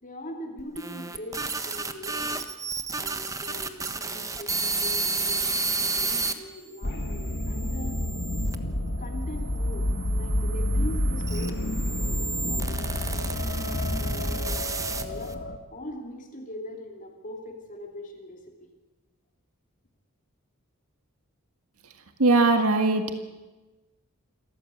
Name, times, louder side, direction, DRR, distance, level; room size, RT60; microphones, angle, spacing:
voice 1, 0.0-2.5 3.0-5.5 5.8-8.0 9.0-13.4 14.0-15.4 15.7-18.7, equal, 35° left, 2 dB, 2.7 m, -41 dB
sound 1, 0.6-6.3 7.0-8.6 9.4-15.3, right 3 dB, 15° right, 1.2 m, -32 dB
sound 2, 6.8-15.6, left 1 dB, 50° left, 1.7 m, -29 dB
voice 2, 22.2-23.1, right 3 dB, 75° right, 6 dB, 1.9 m, -20 dB
27.0 x 14.0 x 8.4 m, 1.1 s
head